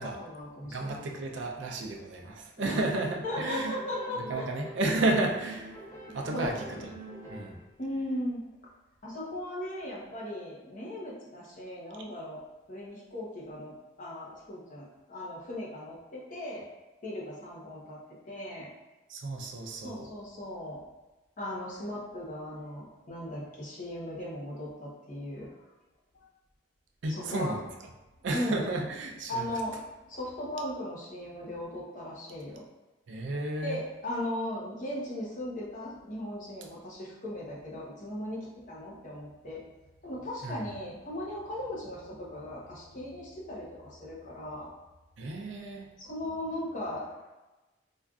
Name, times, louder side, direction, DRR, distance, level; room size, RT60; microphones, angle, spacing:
voice 1, 0.0-1.0 2.6-2.9 3.2-4.5 6.3-6.9 7.8-8.4 9.0-16.7 17.0-18.0 18.3-18.7 19.8-20.8 21.4-25.5 26.1-26.2 27.1-27.6 28.3-28.7 29.3-29.8 30.1-32.6 33.6-39.6 40.0-44.7 46.0-47.3, left 1 dB, 45° left, -5 dB, 0.9 m, -37 dB
voice 2, 0.6-3.8 4.2-5.8 6.1-6.9 7.3-7.6 19.1-20.1 27.0-27.7 28.2-29.5 33.1-33.8 40.4-40.7 45.2-45.9, right 2 dB, 80° right, 1 dB, 0.5 m, -32 dB
sound 1, 2.6-4.9 5.2-7.7, right 2 dB, 15° left, 0.7 m, -45 dB
4.3 x 2.5 x 2.3 m, 1.1 s
head